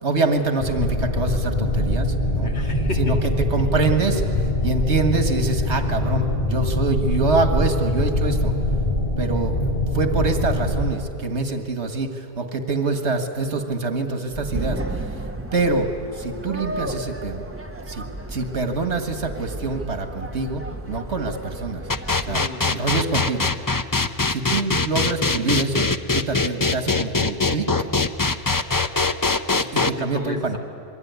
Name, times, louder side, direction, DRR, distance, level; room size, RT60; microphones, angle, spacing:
voice 1, 0.0-2.5 3.0-3.2 3.5-4.2 4.6-8.5 9.2-9.6 9.9-14.8 15.5-15.9 16.1-17.5 17.9-18.0 18.3-20.6 20.9-21.8 22.3-22.4 22.7-23.5 24.3-25.9 26.1-27.7 29.5-30.6, right 3 dB, 85° right, 6 dB, 2.0 m, -25 dB
sound 1, 0.6-10.9, left 1 dB, 45° left, 4.7 m, -23 dB
voice 2, 2.4-4.0 22.3-22.9 30.0-30.6, equal, 75° left, 3 dB, 2.4 m, -33 dB
sound 2, 14.3-22.4, right 2 dB, 10° right, 1.4 m, -33 dB
sound 3, 21.9-29.9, left 3 dB, 20° left, 0.6 m, -21 dB
27.0 x 22.5 x 9.5 m, 2.5 s
omnidirectional pair, 1.1 m